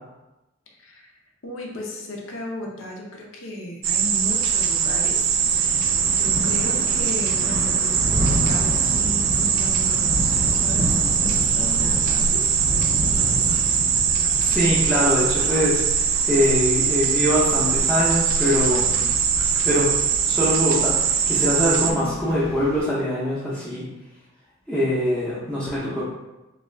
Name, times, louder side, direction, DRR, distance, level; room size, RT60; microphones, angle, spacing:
voice 1, 0.8-1.1 1.4-12.5 21.8-22.2, left 1 dB, 75° left, 0 dB, 0.6 m, -35 dB
sound 1, 3.8-21.9, right 7 dB, 85° right, 0.3 m, -21 dB
Thunder / Rain, 4.4-22.8, equal, 45° right, 0.6 m, -31 dB
voice 2, 14.4-18.9 19.6-19.9 20.3-23.9 24.7-26.1, left 1 dB, 5° left, -11 dB, 0.5 m, -23 dB
2.4 x 2.3 x 3.2 m, 1.0 s
head